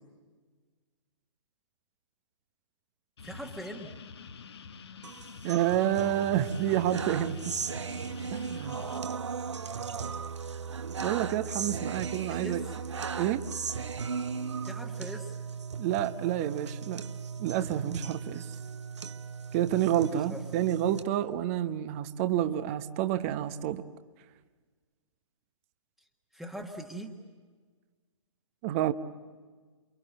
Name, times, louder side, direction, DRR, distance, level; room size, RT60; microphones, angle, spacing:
sound 1, 3.2-9.0, left 6 dB, 50° left, 1.4 m, -47 dB
voice 1, 3.2-3.9 9.6-10.3 11.9-12.6 14.6-15.3 20.0-20.4 26.3-27.2, right 1 dB, ahead, 1.5 m, -42 dB
sound 2, 5.0-21.0, right 6 dB, 60° right, 1.3 m, -37 dB
voice 2, 5.4-7.5 8.3-8.8 11.0-12.6 13.2-13.5 15.8-17.0 17.4-18.4 19.5-23.8 28.6-28.9, right 11 dB, 25° right, 1.0 m, -29 dB
29.0 x 25.5 x 7.9 m
figure-of-eight pair, 130°, 17 cm